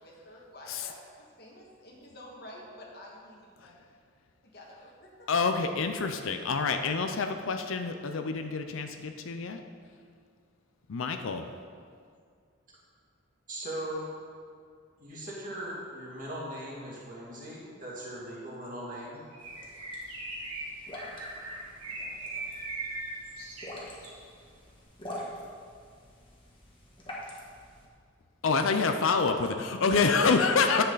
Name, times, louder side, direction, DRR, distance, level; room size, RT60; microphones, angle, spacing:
voice 1, 0.0-3.8 4.4-5.3 21.9-22.1, left 1 dB, 50° left, -2 dB, 1.6 m, -50 dB
voice 2, 5.3-9.6 10.9-11.4 28.4-30.8, left 4 dB, 70° left, 6 dB, 0.5 m, -27 dB
voice 3, 13.5-14.1 15.0-19.2, right 1 dB, 40° right, -6 dB, 2.4 m, -39 dB
Bird, 19.3-24.2, right 2 dB, 90° right, 1.9 m, -40 dB
sound 1, 19.4-27.9, left 1 dB, 25° left, 1.4 m, -46 dB
10.0 x 8.0 x 4.0 m, 2.2 s
head